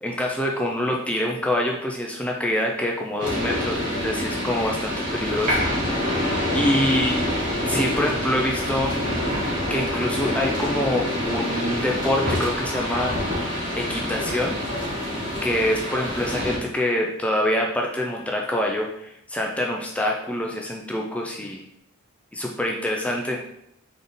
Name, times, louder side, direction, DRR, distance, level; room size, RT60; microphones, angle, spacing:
voice 1, 0.0-5.6 6.5-9.0 9.7-13.2 13.8-14.6 15.4-21.6 22.3-23.4, left 1 dB, 5° left, 0 dB, 0.4 m, -25 dB
sound 1, 3.2-16.6, left 1 dB, 40° right, 1.9 m, -26 dB
3.8 x 3.6 x 3.8 m, 0.77 s
head